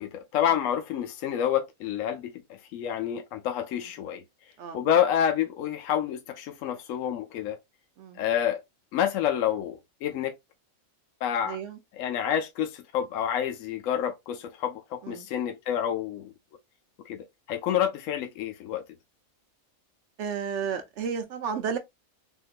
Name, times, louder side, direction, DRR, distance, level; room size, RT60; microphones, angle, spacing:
voice 1, 0.0-2.3 2.7-4.2 4.7-7.6 8.2-8.6 8.9-10.3 11.2-11.6 12.0-16.3 17.0-18.8, left 9 dB, 75° left, 1.0 m, -28 dB
voice 2, 11.4-11.8 15.0-15.3 20.2-21.8, right 7 dB, 65° right, 0.8 m, -32 dB
3.6 x 2.5 x 2.4 m
omnidirectional pair, 1.4 m